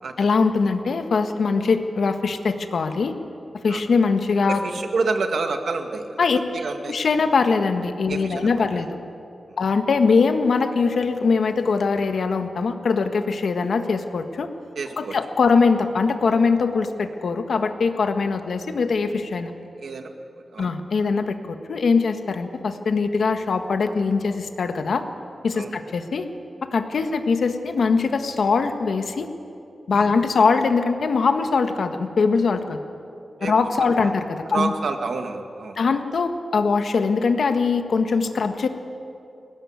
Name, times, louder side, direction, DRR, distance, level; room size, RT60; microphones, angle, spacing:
voice 1, 0.2-3.1 3.6-4.6 6.2-6.4 6.9-8.9 9.6-14.5 15.0-19.5 20.6-25.0 25.4-26.3 26.7-29.3 29.9-32.8 33.4-34.7 35.8-38.7, left 4 dB, 70° left, 7 dB, 1.5 m, -22 dB
voice 2, 4.5-6.2 6.5-7.0 8.1-8.9 9.5-9.6 14.8-15.2 19.8-20.1 20.5-20.7 25.5-25.7 29.9-30.1 33.4-34.1 34.5-35.8, right 3 dB, 70° right, 5 dB, 1.9 m, -29 dB
21.0 x 18.0 x 9.6 m, 2.6 s
wide cardioid pair, 175°, 0 cm